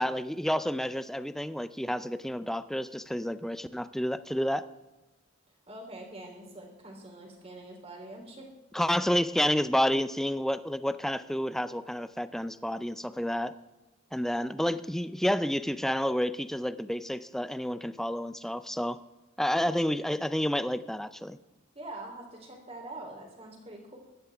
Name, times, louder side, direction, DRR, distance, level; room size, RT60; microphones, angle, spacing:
voice 1, 0.0-4.6 8.7-13.5 14.1-19.0 19.4-21.4, equal, ahead, 13 dB, 0.4 m, -30 dB
voice 2, 5.7-8.5 14.3-14.5 19.5-19.7 21.7-24.0, right 2 dB, 30° right, 1 dB, 3.3 m, -44 dB
16.5 x 12.5 x 3.5 m, 1.1 s
head